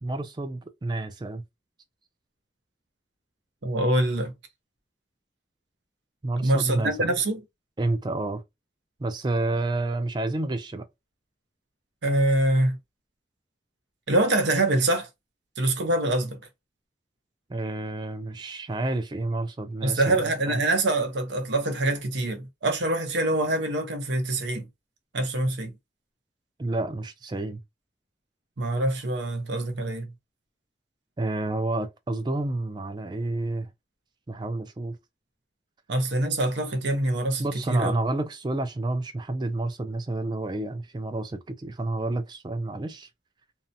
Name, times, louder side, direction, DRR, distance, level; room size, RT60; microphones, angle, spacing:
voice 1, 0.0-1.4 6.2-7.1 7.8-8.4 9.0-10.9 17.5-20.6 26.6-27.6 31.2-33.7 34.3-35.0 37.4-43.1, right 2 dB, 25° right, 0.3 m, -29 dB
voice 2, 3.6-4.3 6.4-7.4 12.0-12.8 14.1-15.1 15.6-16.4 19.8-24.7 25.1-25.7 28.6-30.1 35.9-37.9, right 1 dB, 75° right, 0.7 m, -25 dB
2.8 x 2.1 x 2.5 m
head